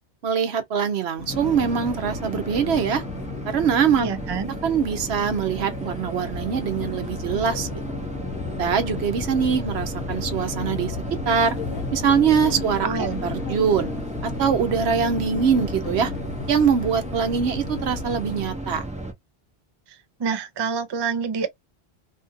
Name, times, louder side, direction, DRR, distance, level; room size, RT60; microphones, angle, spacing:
voice 1, 0.2-3.0 3.5-4.1 4.6-7.8 8.6-11.0 11.3-11.6 11.9-13.9 14.2-16.1 16.5-18.8, right 7 dB, 85° right, 1.0 m, -23 dB
sound 1, 1.2-18.5, left 5 dB, 65° left, 0.8 m, -35 dB
sound 2, 1.3-19.1, right 1 dB, 10° right, 0.7 m, -34 dB
voice 2, 4.0-4.5 12.8-13.2 19.9-21.5, right 6 dB, 40° right, 0.4 m, -27 dB
2.8 x 2.6 x 2.5 m
omnidirectional pair, 1.1 m